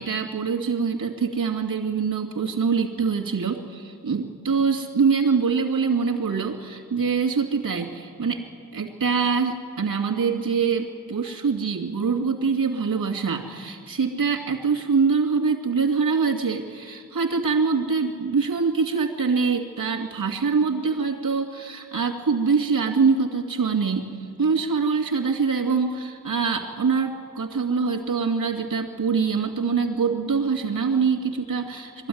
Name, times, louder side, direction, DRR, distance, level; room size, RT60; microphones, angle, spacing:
voice 1, 0.0-8.4 8.7-24.1 24.4-32.1, right 5 dB, 75° right, 2 dB, 2.6 m, -24 dB
22.5 x 13.5 x 9.5 m, 2.2 s
cardioid pair, 70°, 34 cm